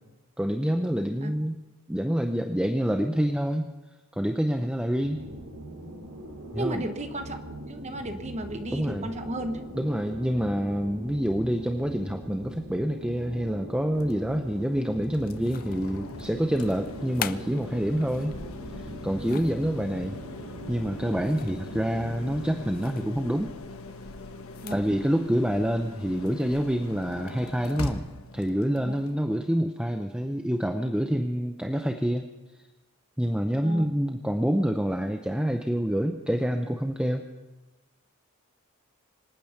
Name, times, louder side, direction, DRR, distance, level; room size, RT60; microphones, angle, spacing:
voice 1, 0.4-1.6 1.9-3.7 4.1-5.2 6.5-6.8 8.7-9.1 9.7-18.4 18.7-20.2 20.7-23.5 24.7-28.0 28.3-32.3 33.2-37.3, equal, 5° right, 5 dB, 0.6 m, -27 dB
sound 1, 5.0-22.5, right 1 dB, 85° right, 3.3 m, -41 dB
voice 2, 6.5-7.4 7.7-9.6 19.3-19.4 24.6-24.9 28.8-29.0 33.6-33.9, right 1 dB, 30° right, 7 dB, 1.2 m, -34 dB
sound 2, 13.9-29.1, left 2 dB, 70° left, 1.3 m, -41 dB
sound 3, 15.3-16.0 16.8-18.4 18.9-19.6 21.2-21.7 22.0-22.1 22.7-23.1 24.4-24.9, left 9 dB, 40° left, 0.4 m, -40 dB
25.5 x 9.2 x 5.7 m, 1.1 s
head